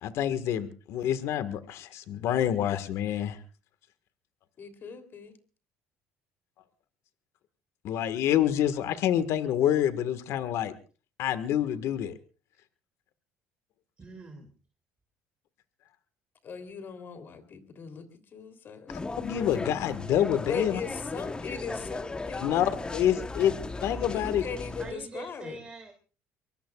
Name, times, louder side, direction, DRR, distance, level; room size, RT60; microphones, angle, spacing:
voice 1, 0.0-3.4 7.8-10.7 11.2-12.1 19.2-20.8 22.4-24.4, left 10 dB, 65° left, 12 dB, 1.6 m, -27 dB
voice 2, 4.6-5.3 16.4-19.3 20.4-22.6 24.1-25.6, left 5 dB, 45° left, 9 dB, 3.2 m, -39 dB
voice 3, 14.0-14.5 24.8-25.9, right 3 dB, 20° right, 4 dB, 2.5 m, -44 dB
sound 1, 18.9-24.9, left 3 dB, 15° left, 1.1 m, -37 dB
23.5 x 23.0 x 2.4 m, 0.36 s
cardioid pair, 105°, 5 cm